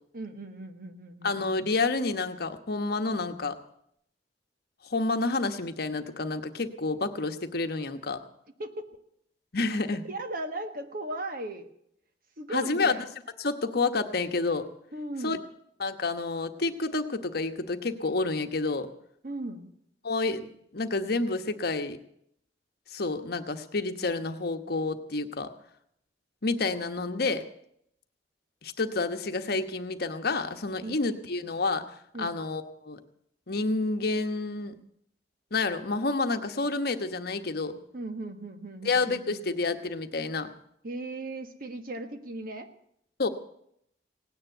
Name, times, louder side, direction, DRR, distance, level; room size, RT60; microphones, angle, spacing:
voice 1, 0.1-1.7 8.6-8.9 9.7-9.8 10.1-11.7 12.4-13.0 14.9-15.4 19.2-19.7 30.8-31.0 32.1-32.4 37.9-39.6 40.8-42.7, right 2 dB, 55° right, 7 dB, 1.4 m, -37 dB
voice 2, 1.2-3.6 4.8-8.2 9.5-10.0 12.5-13.0 13.4-14.6 15.2-15.4 15.8-18.9 20.0-22.0 22.9-25.5 26.4-27.4 28.6-31.8 32.2-33.0 33.5-34.8 35.5-37.8 38.8-40.5 43.2-43.3, left 3 dB, 60° left, 8 dB, 1.1 m, -29 dB
17.5 x 9.7 x 7.9 m, 0.72 s
head